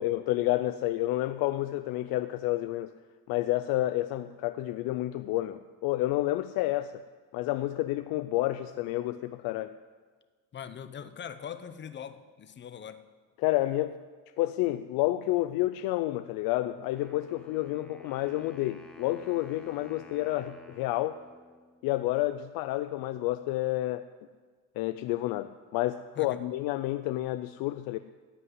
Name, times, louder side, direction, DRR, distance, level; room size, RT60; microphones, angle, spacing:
voice 1, 0.0-2.9 3.3-6.9 7.3-9.8 13.4-14.0 14.4-21.2 21.8-24.0 24.8-28.0, left 16 dB, 80° left, 11 dB, 0.5 m, -30 dB
voice 2, 10.5-13.0 26.2-26.4, left 8 dB, 30° left, 12 dB, 0.8 m, -42 dB
Wind instrument woodwind instrument, 16.9-21.9, left 2 dB, 5° left, 1.2 m, -52 dB
15.0 x 5.7 x 9.8 m, 1.5 s
cardioid pair, 135°, 35 cm